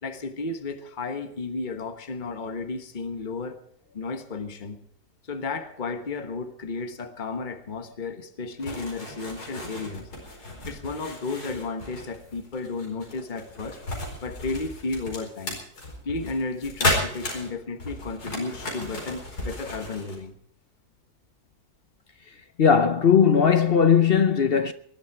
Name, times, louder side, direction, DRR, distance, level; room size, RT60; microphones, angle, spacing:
voice 1, 0.0-3.6 3.9-4.8 5.2-10.1 10.6-13.8 14.2-15.6 16.0-20.3, left 3 dB, 35° left, 1.3 m, -33 dB
sound 1, 8.6-20.2, left 1 dB, 90° left, 5.1 m, -33 dB
voice 2, 22.6-24.7, left 7 dB, 50° left, 0.8 m, -18 dB
20.5 x 12.0 x 4.8 m
omnidirectional pair, 1.6 m